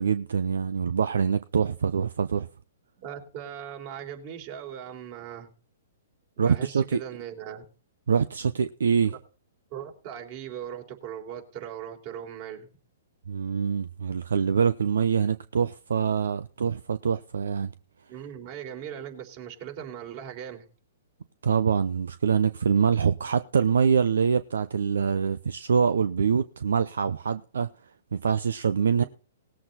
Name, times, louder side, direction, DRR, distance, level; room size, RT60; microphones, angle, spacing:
voice 1, 0.0-2.5 6.4-7.0 8.1-9.1 13.3-17.7 21.4-27.7 28.1-29.0, right 6 dB, 75° right, 0.5 m, -24 dB
voice 2, 3.0-5.5 6.4-7.6 9.0-9.2 9.7-12.7 18.1-20.6 29.0-29.1, right 9 dB, 45° right, 3.9 m, -39 dB
19.0 x 7.7 x 4.2 m
hypercardioid pair, 120°, 0 cm